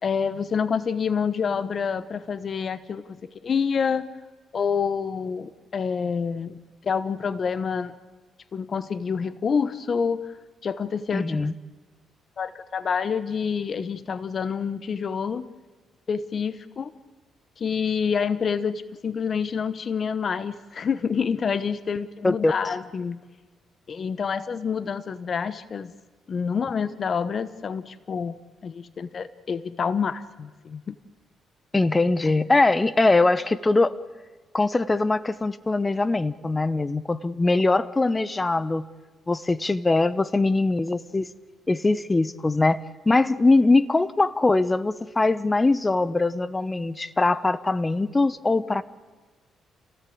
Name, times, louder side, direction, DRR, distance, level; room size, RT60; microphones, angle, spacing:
voice 1, 0.0-4.1 4.5-6.6 6.8-7.9 8.5-10.2 10.6-11.5 12.4-15.5 16.1-16.9 17.6-23.2 23.9-25.9 26.3-31.0, left 6 dB, 45° left, 14 dB, 1.1 m, -27 dB
voice 2, 11.1-11.5 22.2-22.5 31.7-33.9 34.5-38.9 39.3-41.3 41.7-48.8, left 2 dB, 20° left, 16 dB, 1.0 m, -22 dB
28.5 x 17.5 x 8.7 m, 1.3 s
cardioid pair, 90°, 0 cm